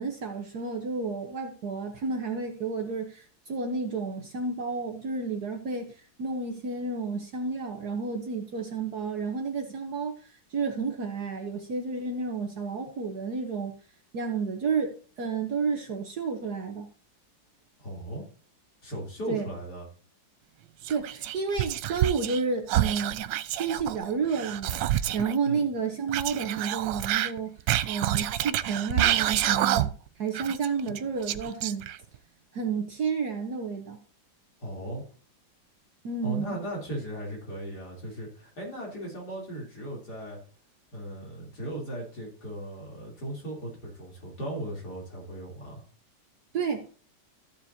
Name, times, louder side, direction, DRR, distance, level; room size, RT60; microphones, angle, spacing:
voice 1, 0.0-13.7 14.1-16.9 19.3-19.5 20.9-23.3 23.5-27.6 27.8-29.9 30.2-31.9 32.5-34.0 36.0-36.6 46.5-46.9, right 5 dB, 60° right, 1.5 m, -31 dB
voice 2, 17.8-18.2 18.8-19.8 25.4-25.6 34.6-35.0 36.2-40.4 40.9-45.8, right 1 dB, 55° left, 3.9 m, -37 dB
Whispering, 20.8-22.4 22.7-25.3 26.1-30.1 30.3-32.2, right 13 dB, 75° right, 1.3 m, -28 dB
14.5 x 7.4 x 2.8 m
omnidirectional pair, 2.1 m